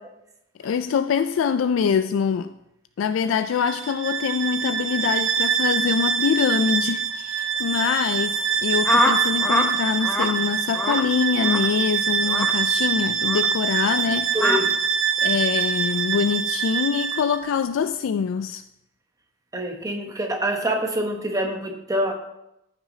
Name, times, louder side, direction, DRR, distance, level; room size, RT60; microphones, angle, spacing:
voice 1, 0.6-2.5 3.0-14.4 15.2-18.6, left 6 dB, 80° left, 0.3 m, -24 dB
Bowed string instrument, 3.5-17.4, right 7 dB, 75° right, 0.6 m, -24 dB
sound 1, 8.8-9.7 10.0-10.3 10.7-11.0 11.4-11.7 12.3-12.5 13.2-13.5 14.3-14.6, left 1 dB, 10° left, 0.7 m, -23 dB
voice 2, 14.3-14.7 19.5-22.1, right 1 dB, 20° right, 1.0 m, -25 dB
14.5 x 5.9 x 2.8 m
head